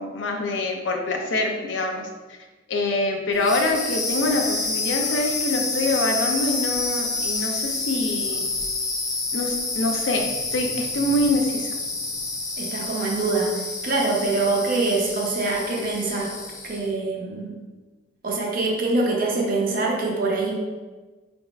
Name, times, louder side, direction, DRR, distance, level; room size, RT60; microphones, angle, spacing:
voice 1, 0.0-2.4 2.7-8.4 9.3-10.3 10.5-11.7, left 2 dB, 75° left, 3 dB, 0.5 m, -25 dB
sound 1, 3.3-16.9, left 3 dB, 20° left, 0.4 m, -28 dB
voice 2, 12.6-16.4 16.6-17.6 18.2-20.5, right 3 dB, 50° right, -1 dB, 0.6 m, -24 dB
4.0 x 3.4 x 2.4 m, 1.3 s
head